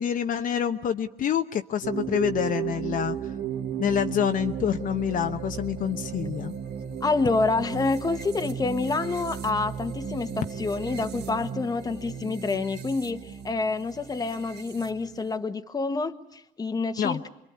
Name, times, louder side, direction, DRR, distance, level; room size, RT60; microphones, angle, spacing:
voice 1, 0.0-3.2 3.8-6.5 17.0-17.2, left 9 dB, 55° left, 7 dB, 1.0 m, -27 dB
sound 1, 1.8-15.4, right 8 dB, 75° right, 2.1 m, -35 dB
voice 2, 7.0-17.3, left 3 dB, 20° left, 9 dB, 1.3 m, -28 dB
27.0 x 22.5 x 9.6 m, 0.84 s
cardioid pair, 110°, 17 cm